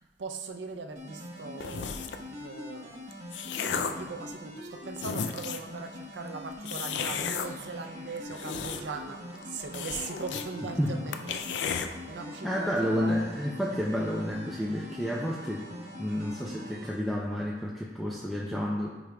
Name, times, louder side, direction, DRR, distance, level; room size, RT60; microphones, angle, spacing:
voice 1, 0.2-2.0 2.3-2.9 3.3-13.3, right 4 dB, 85° right, 5 dB, 0.5 m, -40 dB
sound 1, 1.0-17.0, left 1 dB, 40° right, 1.1 m, -43 dB
sound 2, 1.6-2.3 2.9-4.1 4.6-4.7 5.0-5.7 6.6-7.5 8.2-9.1 9.3-9.4 9.7-10.5 10.8-10.9 11.1-11.9, left 6 dB, 85° left, 0.4 m, -33 dB
sound 3, 7.1-17.0, left 1 dB, 45° left, 1.0 m, -53 dB
voice 2, 12.4-15.7 16.0-18.9, equal, ahead, -5 dB, 0.5 m, -30 dB
9.0 x 5.0 x 2.3 m, 1.2 s
head